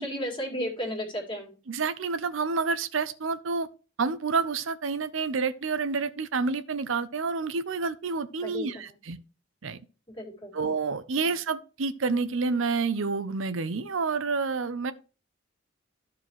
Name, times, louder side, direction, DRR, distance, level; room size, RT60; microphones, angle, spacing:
voice 1, 0.0-1.5 8.4-8.7 10.2-10.5 11.2-11.3, equal, 25° left, 2.3 m, -33 dB
voice 2, 1.7-3.7 4.0-9.2 9.6-9.8 10.5-14.9, right 4 dB, 70° right, 0.6 m, -29 dB
13.5 x 4.8 x 3.1 m
head